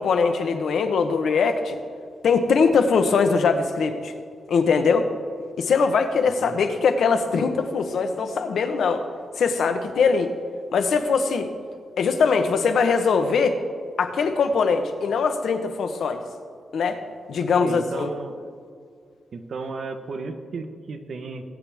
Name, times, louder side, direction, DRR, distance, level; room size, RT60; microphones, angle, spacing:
voice 1, 0.0-1.8 2.2-4.1 4.5-5.1 5.6-9.0 9.4-10.3 10.7-11.5 12.0-13.6 14.0-16.2 16.7-17.0 17.3-18.1, left 5 dB, 75° left, 8 dB, 1.0 m, -21 dB
voice 2, 6.4-6.8 17.6-18.5 19.3-21.4, right 4 dB, 55° right, 7 dB, 1.0 m, -34 dB
21.5 x 8.9 x 3.5 m, 2.1 s
wide cardioid pair, 125°, 0 cm